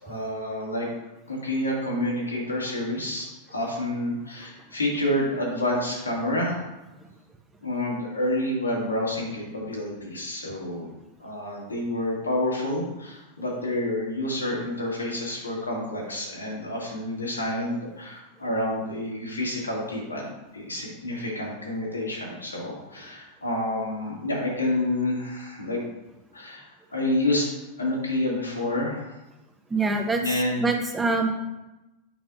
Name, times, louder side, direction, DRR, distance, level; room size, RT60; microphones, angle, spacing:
voice 1, 0.0-0.9 1.3-6.7 7.6-10.9 11.2-25.8 26.3-27.5 27.8-29.2 30.2-30.7, left 1 dB, 80° left, -3 dB, 2.1 m, -29 dB
voice 2, 29.7-30.2 30.6-31.3, right 3 dB, 10° right, 4 dB, 0.9 m, -24 dB
8.7 x 5.8 x 2.6 m, 0.99 s
figure-of-eight pair, 90°, 0 cm